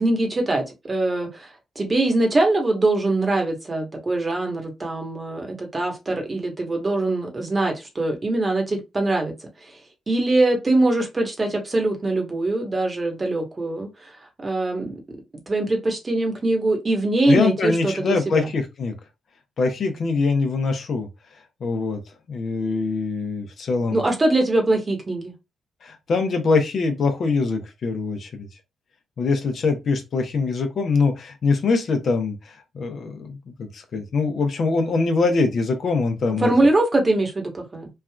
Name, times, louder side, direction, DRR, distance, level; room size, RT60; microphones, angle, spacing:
voice 1, 0.0-1.5 1.7-9.3 10.1-14.1 14.4-15.0 15.5-18.5 23.9-25.3 36.4-37.9, right 2 dB, 30° right, 1.1 m, -22 dB
voice 2, 17.3-18.9 19.6-21.1 21.6-22.0 22.3-24.0 25.8-28.5 29.2-36.7, left 4 dB, 60° left, 0.7 m, -23 dB
3.3 x 2.4 x 2.3 m
supercardioid pair, 60°, 0 cm